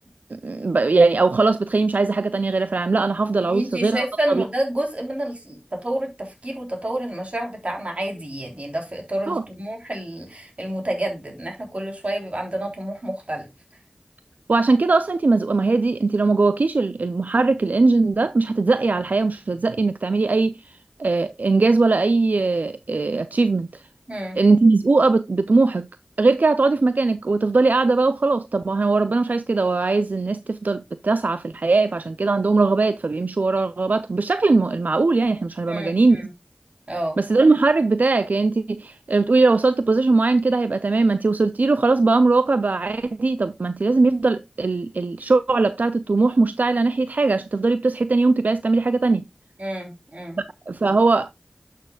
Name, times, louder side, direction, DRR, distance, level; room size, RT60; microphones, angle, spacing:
voice 1, 0.3-4.4 9.3-9.4 14.5-20.5 21.0-23.8 24.4-25.9 26.2-36.2 37.2-49.2 50.7-51.3, right 3 dB, 85° right, 0.4 m, -20 dB
voice 2, 3.4-13.5 24.1-24.4 35.7-36.3 36.9-37.2 49.6-50.4, right 1 dB, 55° right, 3.6 m, -29 dB
11.5 x 6.5 x 2.3 m
wide cardioid pair, 40°, 3 cm